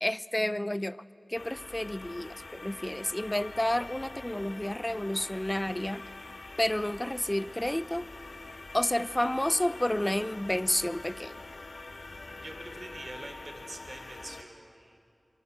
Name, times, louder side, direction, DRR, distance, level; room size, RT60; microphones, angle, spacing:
voice 1, 0.0-1.0 1.3-2.3 2.6-6.0 6.6-8.1 8.7-11.3, left 1 dB, 20° left, 16 dB, 0.6 m, -30 dB
sound 1, 1.3-14.4, left 2 dB, 75° left, 1.6 m, -45 dB
voice 2, 12.3-15.0, right 1 dB, 45° right, 5 dB, 3.6 m, -45 dB
24.0 x 23.5 x 8.2 m, 2.5 s
wide cardioid pair, 40°, 0 cm